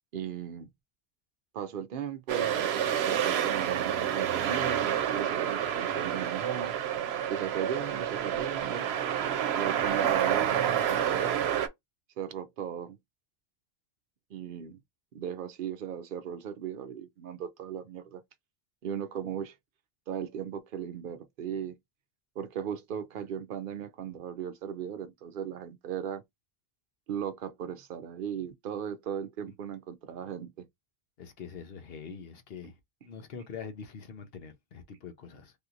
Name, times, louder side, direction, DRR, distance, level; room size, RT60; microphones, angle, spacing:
voice 1, 0.1-0.7 1.5-6.7 7.3-8.9 9.5-11.4 12.2-13.0 14.3-14.8 15.1-18.2 18.8-19.6 20.1-21.7 22.4-26.2 27.1-30.7, right 8 dB, 60° right, 0.7 m, -37 dB
sound 1, 2.3-11.7, right 9 dB, 90° right, 0.9 m, -29 dB
voice 2, 31.2-32.7 33.0-35.5, left 6 dB, 70° left, 1.0 m, -44 dB
3.4 x 2.8 x 2.4 m
omnidirectional pair, 1.0 m